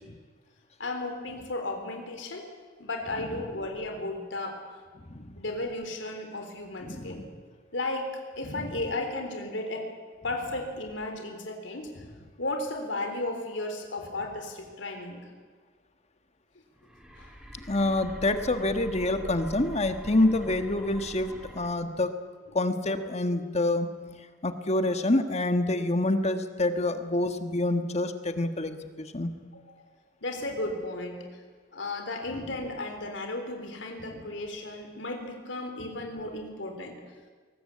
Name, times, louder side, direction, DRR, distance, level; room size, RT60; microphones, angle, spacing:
voice 1, 0.8-2.5 2.8-4.6 5.4-7.3 7.7-9.9 10.2-11.9 12.4-15.2 17.2-17.3 30.2-31.3 31.7-37.0, left 2 dB, 70° left, 4 dB, 3.8 m, -34 dB
voice 2, 6.8-7.3 8.4-8.7 17.7-22.2 22.5-23.9 24.4-29.3 32.4-32.5 34.1-34.2, left 2 dB, 35° left, 8 dB, 1.4 m, -27 dB
sound 1, 16.7-21.7, equal, 5° right, 2.9 m, -44 dB
22.5 x 19.5 x 8.6 m, 1.5 s
head